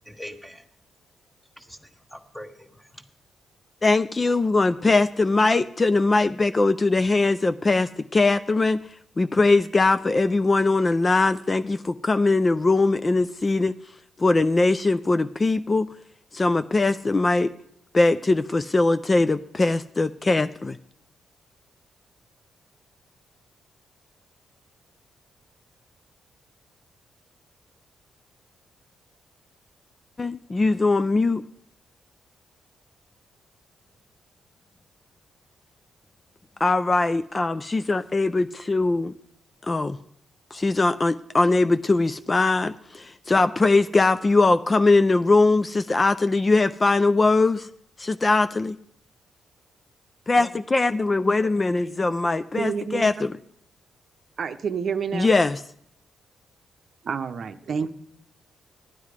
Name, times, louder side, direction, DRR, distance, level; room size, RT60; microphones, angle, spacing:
voice 1, 0.1-0.6 1.6-3.0, left 1 dB, 5° left, 6 dB, 1.3 m, -42 dB
voice 2, 3.8-8.8 9.2-13.7 14.2-15.9 16.3-17.5 17.9-20.8 30.2-31.4 36.6-39.1 39.7-40.0 40.5-47.7 48.0-48.8 50.3-53.4 55.1-55.6, left 3 dB, 30° left, 11 dB, 0.4 m, -21 dB
voice 3, 52.6-53.3 54.4-55.3 57.0-57.9, right 6 dB, 60° right, 9 dB, 0.7 m, -29 dB
12.5 x 9.2 x 4.9 m, 0.68 s
cardioid pair, 80°, 0 cm